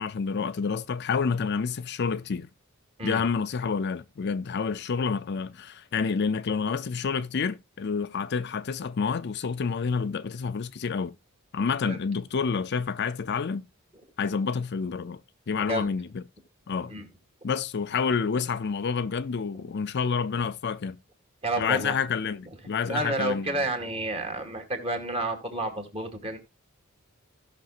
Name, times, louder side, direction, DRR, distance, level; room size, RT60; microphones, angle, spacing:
voice 1, 0.0-2.5 3.0-11.2 11.5-13.7 14.2-15.2 15.5-16.2 16.7-16.9 17.4-21.0 21.6-23.6, left 5 dB, 50° left, 0.5 m, -28 dB
voice 2, 21.4-22.0 22.8-26.4, right 2 dB, 25° right, 2.2 m, -30 dB
16.5 x 6.1 x 2.5 m
head